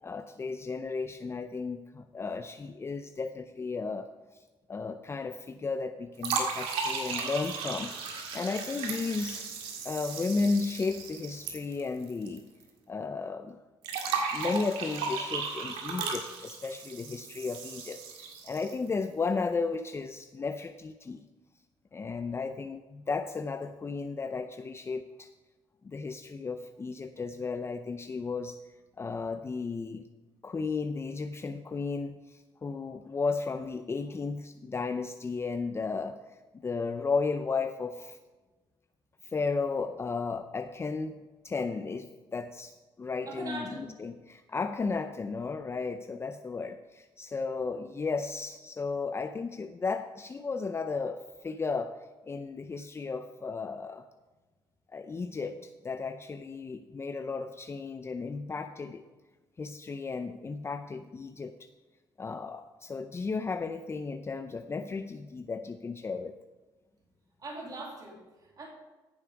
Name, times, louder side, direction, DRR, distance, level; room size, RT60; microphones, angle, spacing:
voice 1, 0.0-4.4 4.7-7.9 8.3-9.5 9.8-12.5 12.9-13.6 14.3-21.3 21.9-25.3 25.8-28.6 29.0-30.0 30.4-36.2 36.6-38.2 39.2-41.1 41.4-52.0 52.3-54.1 54.9-59.0 59.6-61.5 62.2-66.4, left 4 dB, 25° left, 9 dB, 0.5 m, -34 dB
sound 1, 6.2-12.4 12.6-12.7 13.8-18.9, right 5 dB, 85° right, 2.0 m, -35 dB
voice 2, 43.3-43.9 67.4-68.7, right 2 dB, 40° right, -1 dB, 2.5 m, -41 dB
15.0 x 7.3 x 4.7 m, 1.2 s
cardioid pair, 85°, 10 cm